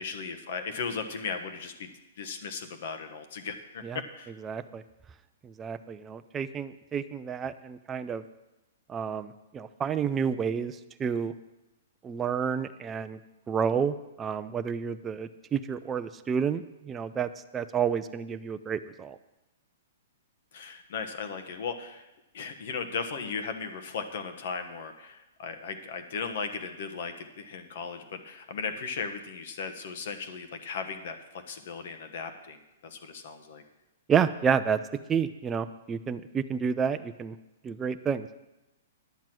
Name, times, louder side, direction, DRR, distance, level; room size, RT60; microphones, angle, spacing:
voice 1, 0.0-1.9 2.2-4.4 20.5-22.1 22.3-33.6, left 5 dB, 60° left, 7 dB, 1.2 m, -37 dB
voice 2, 4.4-4.8 5.4-8.2 8.9-11.3 12.0-13.2 13.5-19.2 34.1-34.8 35.1-37.4 37.6-38.3, right 7 dB, 15° right, 9 dB, 0.4 m, -30 dB
10.5 x 7.4 x 6.2 m, 0.97 s
hypercardioid pair, 145°, 0 cm